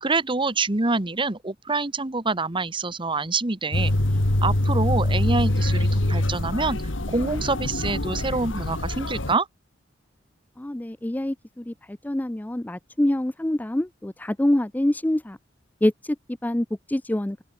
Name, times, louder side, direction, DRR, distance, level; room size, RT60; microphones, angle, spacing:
voice 1, 0.0-3.9 4.4-6.8 7.1-9.5, right 3 dB, 25° right, 1.3 m, -26 dB
sound 1, 3.7-9.3, left 1 dB, 90° left, 2.1 m, -24 dB
voice 2, 10.6-11.3 11.7-11.8 12.0-15.4 15.8-15.9 16.4-17.4, left 1 dB, 10° left, 0.4 m, -25 dB
open air
head